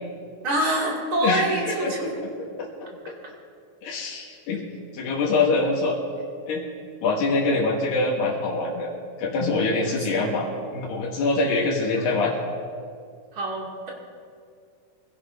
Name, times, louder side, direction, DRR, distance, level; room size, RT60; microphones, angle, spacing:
voice 1, 0.4-2.1 9.8-10.5 11.9-12.1 13.3-13.9, right 1 dB, 40° right, -3 dB, 3.0 m, -27 dB
voice 2, 1.2-2.1 2.4-2.7 3.8-4.6 4.9-6.0 6.5-6.7 7.0-8.9 9.2-10.5 10.7-12.3, left 3 dB, 80° left, -4 dB, 3.3 m, -24 dB
25.0 x 16.0 x 2.7 m, 2.2 s
omnidirectional pair, 4.1 m